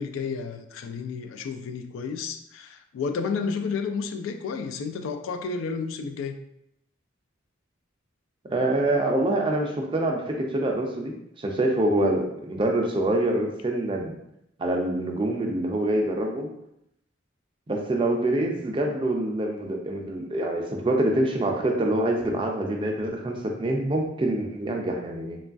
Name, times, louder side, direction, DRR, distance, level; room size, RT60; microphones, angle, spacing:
voice 1, 0.0-6.4, left 5 dB, 85° left, 8 dB, 0.3 m, -31 dB
voice 2, 8.5-14.2 14.6-16.5 17.7-25.4, right 1 dB, 25° right, 1 dB, 0.3 m, -25 dB
2.9 x 2.3 x 2.5 m, 0.79 s
head